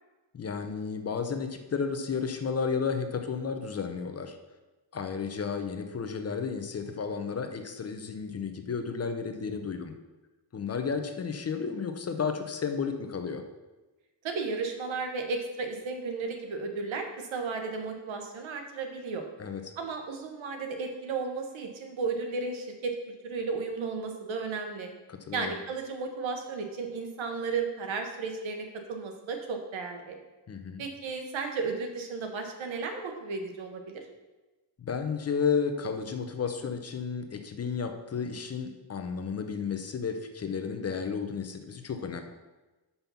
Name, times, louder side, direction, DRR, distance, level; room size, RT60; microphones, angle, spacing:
voice 1, 0.3-4.4 4.9-9.9 10.5-13.4 19.4-19.6 25.1-25.5 30.5-30.8 34.8-42.2, left 6 dB, 35° left, 6 dB, 0.7 m, -32 dB
voice 2, 14.2-19.2 19.8-24.9 25.3-30.1 30.8-34.0, right 4 dB, 90° right, 4 dB, 1.4 m, -34 dB
5.8 x 5.5 x 6.9 m, 1.1 s
wide cardioid pair, 170°, 45 cm